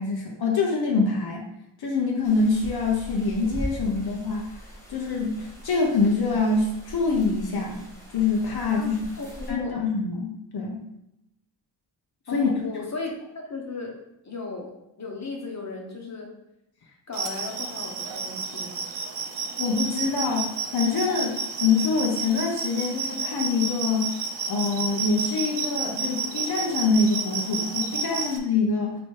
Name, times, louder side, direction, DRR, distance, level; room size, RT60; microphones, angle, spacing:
voice 1, 0.0-1.5 1.8-4.5 4.9-7.8 8.1-9.0 9.5-10.8 12.3-12.5 19.6-24.2 24.5-28.9, left 4 dB, 55° left, 0 dB, 0.8 m, -25 dB
sound 1, 2.2-9.5, equal, 5° left, 1.3 m, -40 dB
voice 2, 8.8-9.8 12.3-13.1 13.4-14.0 14.2-16.3 17.1-18.8 28.1-28.3, left 3 dB, 40° left, 0 dB, 1.1 m, -36 dB
sound 2, 17.1-28.4, right 5 dB, 70° right, 0.6 m, -31 dB
3.1 x 3.0 x 4.5 m, 0.85 s
cardioid pair, 85°, 44 cm